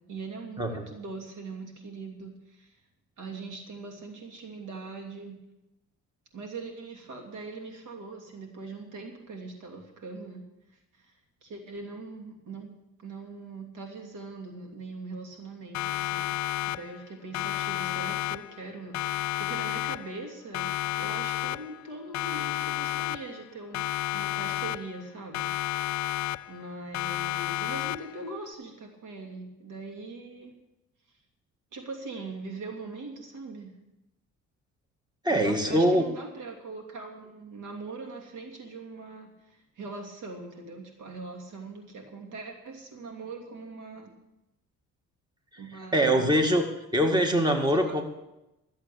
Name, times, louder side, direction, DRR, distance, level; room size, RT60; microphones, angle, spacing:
voice 1, 0.0-2.8 3.2-5.4 6.3-10.4 10.9-12.7 13.0-16.3 16.7-25.5 26.5-30.5 31.7-33.8 35.3-44.1 45.6-46.4 47.7-48.0, right 3 dB, 90° right, 1 dB, 2.9 m, -41 dB
Siren, 15.7-17.1 17.3-18.7 18.9-20.3 20.5-21.9 22.1-23.5 23.7-25.1 25.3-26.7 26.9-28.3, left 14 dB, 70° left, 0.5 m, -31 dB
voice 2, 35.2-36.0 45.5-45.6 45.9-46.7 46.9-48.0, equal, 15° right, 4 dB, 2.0 m, -23 dB
13.5 x 7.9 x 8.5 m, 0.92 s
cardioid pair, 90°, 30 cm